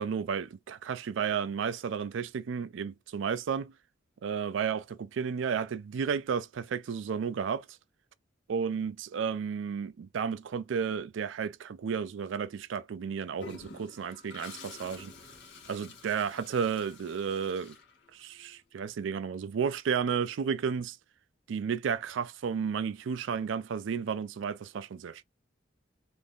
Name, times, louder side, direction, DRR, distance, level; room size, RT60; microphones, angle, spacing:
voice 1, 0.0-3.7 4.2-4.8 5.1-7.6 8.5-15.1 15.7-17.8 18.1-21.0 21.5-25.2, right 6 dB, 70° right, 0.4 m, -32 dB
Toilet flush, 13.4-18.5, left 4 dB, 65° left, 0.8 m, -49 dB
2.5 x 2.5 x 3.5 m
head